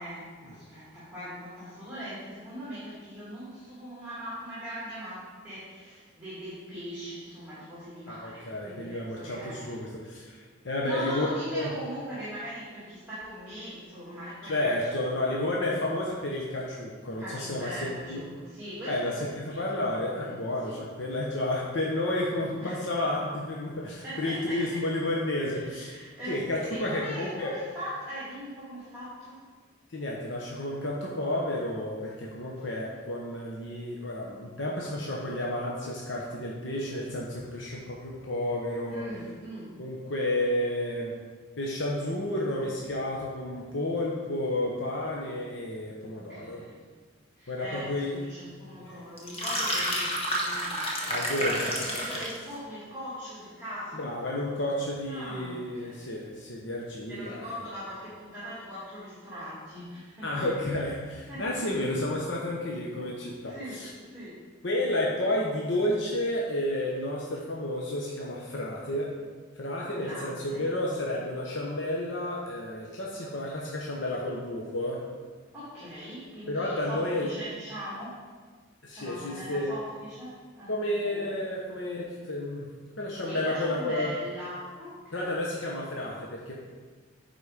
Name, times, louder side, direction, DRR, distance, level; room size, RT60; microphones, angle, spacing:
voice 1, 0.0-9.8 10.8-15.1 17.2-19.8 20.2-20.8 22.6-22.8 24.0-24.9 25.4-29.4 38.9-39.8 46.0-46.7 47.4-54.1 55.1-56.0 57.1-60.5 61.3-61.9 63.5-64.4 70.0-70.7 75.5-78.2 78.9-81.4 83.2-85.4, equal, 10° right, -11 dB, 2.3 m, -41 dB
voice 2, 8.1-11.3 11.5-11.7 14.4-18.2 18.9-26.0 26.3-27.5 29.9-39.0 39.8-41.1 41.6-46.6 47.5-48.2 48.8-49.0 51.1-51.5 52.1-52.2 53.9-57.5 60.2-63.9 64.6-69.1 69.6-75.0 76.5-77.3 78.8-79.7 80.7-82.7 83.0-84.1 85.1-86.6, left 1 dB, 70° left, -3 dB, 1.0 m, -31 dB
sound 1, 49.2-52.4, equal, 30° left, 1.2 m, -30 dB
9.5 x 4.3 x 4.9 m, 1.5 s
head